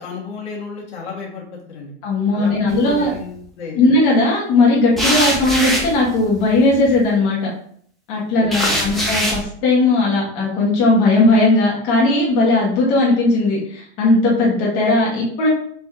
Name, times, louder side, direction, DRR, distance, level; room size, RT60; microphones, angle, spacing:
voice 1, 0.0-1.9 2.3-4.0 8.4-9.2, left 5 dB, 70° left, -2 dB, 1.8 m, -33 dB
voice 2, 2.0-3.1 3.7-7.5 8.1-15.5, left 2 dB, 50° left, -4 dB, 1.5 m, -17 dB
sound 1, 2.7-3.2 5.0-7.0 8.5-9.4, equal, ahead, 0.8 m, -22 dB
4.1 x 3.1 x 3.7 m, 0.63 s
hypercardioid pair, 125°, 35 cm